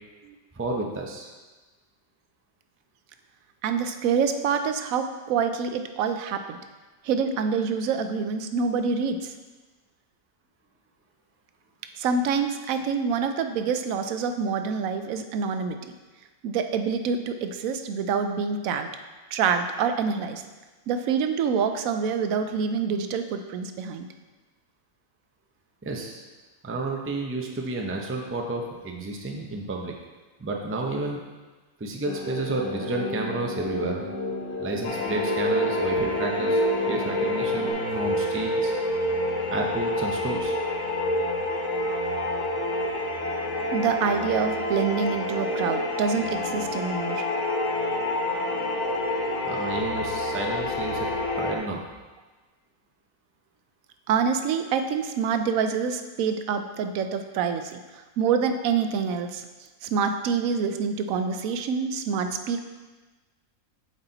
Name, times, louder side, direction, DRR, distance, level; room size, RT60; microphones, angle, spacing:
voice 1, 0.5-1.3 25.8-26.2 26.6-30.0 30.4-31.2 31.8-34.1 34.6-38.7 39.5-40.6 49.4-51.1 51.4-51.8, right 2 dB, 20° right, 1 dB, 0.4 m, -31 dB
voice 2, 3.6-6.6 7.0-9.3 12.0-15.8 16.4-18.9 19.3-20.4 20.9-24.1 43.7-47.2 54.1-59.4 59.8-62.6, right 6 dB, 90° right, 7 dB, 1.0 m, -26 dB
sound 1, 32.0-37.7, left 2 dB, 15° left, 0.7 m, -33 dB
sound 2, 34.8-51.6, left 1 dB, 70° left, 1.2 m, -27 dB
8.0 x 4.3 x 3.9 m, 1.2 s
omnidirectional pair, 1.4 m